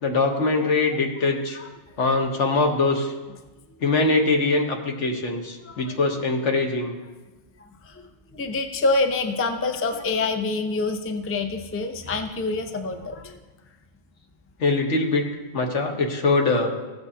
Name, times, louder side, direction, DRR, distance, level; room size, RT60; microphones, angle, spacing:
voice 1, 0.0-1.6 2.0-3.1 3.8-6.9 14.6-15.3 15.5-16.7, left 3 dB, 80° left, 3 dB, 1.5 m, -22 dB
voice 2, 7.6-13.4, left 3 dB, 20° left, 6 dB, 0.4 m, -27 dB
15.0 x 8.0 x 2.8 m, 1.2 s
omnidirectional pair, 1.2 m